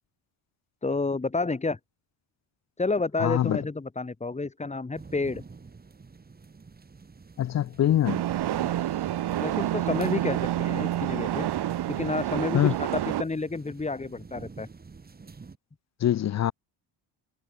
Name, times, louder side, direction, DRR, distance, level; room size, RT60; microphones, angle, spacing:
voice 1, 0.8-1.8 2.8-5.4 8.5-8.8 9.4-11.5 11.9-14.7, left 3 dB, 15° left, 3.7 m, -30 dB
voice 2, 3.2-3.6 7.4-8.2 12.5-12.7 16.0-16.5, left 11 dB, 35° left, 0.5 m, -24 dB
sound 1, 4.9-15.6, right 4 dB, 20° right, 3.6 m, -49 dB
sound 2, 8.1-13.2, right 13 dB, 55° right, 1.8 m, -28 dB
cardioid pair, 160°, 48 cm